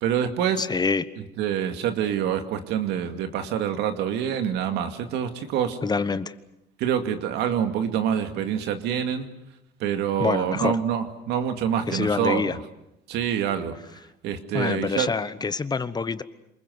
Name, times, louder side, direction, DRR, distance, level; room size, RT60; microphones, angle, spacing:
voice 1, 0.0-0.6 1.4-5.8 6.8-9.3 9.8-12.4 13.1-13.8 14.2-15.1, right 9 dB, 90° right, 7 dB, 2.3 m, -26 dB
voice 2, 0.6-1.1 5.8-6.3 10.2-10.8 11.9-12.6 14.5-16.2, left 4 dB, 25° left, 14 dB, 1.1 m, -26 dB
28.0 x 21.0 x 8.0 m, 0.87 s
cardioid pair, 110°, 17 cm